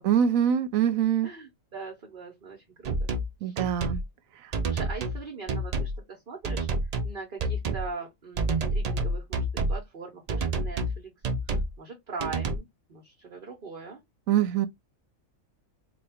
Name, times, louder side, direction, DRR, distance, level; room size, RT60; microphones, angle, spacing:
voice 1, 0.0-1.3 3.4-4.0 14.3-14.7, right 9 dB, 80° right, 1.0 m, -24 dB
voice 2, 1.2-3.1 3.5-3.6 4.6-6.7 7.0-11.1 11.5-14.0, right 4 dB, 45° right, 1.0 m, -41 dB
sound 1, 2.8-3.3 3.6-4.0 4.5-5.2 5.5-6.0 6.4-7.1 7.4-7.9 8.4-9.8 10.3-11.0 11.2-11.7 12.2-12.6, right 2 dB, 60° right, 0.4 m, -28 dB
4.1 x 2.3 x 3.4 m
omnidirectional pair, 1.4 m